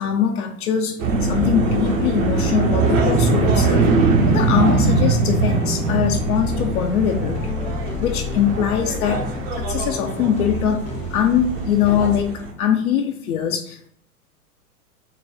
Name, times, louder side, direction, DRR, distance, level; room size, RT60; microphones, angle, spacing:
voice 1, 0.0-3.9 4.3-7.6 8.0-9.2 9.6-13.9, left 8 dB, 65° left, 3 dB, 0.6 m, -22 dB
sound 1, 1.0-12.5, right 3 dB, 55° right, 1.0 m, -22 dB
sound 2, 1.7-12.2, left 2 dB, 15° left, 0.4 m, -31 dB
4.1 x 2.2 x 3.9 m, 0.66 s
hypercardioid pair, 110°, 46 cm